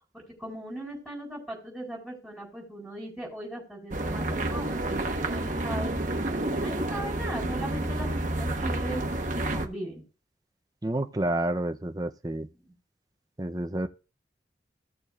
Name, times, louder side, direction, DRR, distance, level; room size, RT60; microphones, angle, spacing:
voice 1, 0.4-6.0 6.6-9.0 9.3-10.0, right 1 dB, ahead, 4.2 m, -38 dB
sound 1, 3.9-9.7, right 1 dB, 45° right, 1.0 m, -29 dB
voice 2, 10.8-12.5 13.4-13.9, right 1 dB, 20° right, 0.6 m, -29 dB
16.0 x 6.8 x 2.4 m
head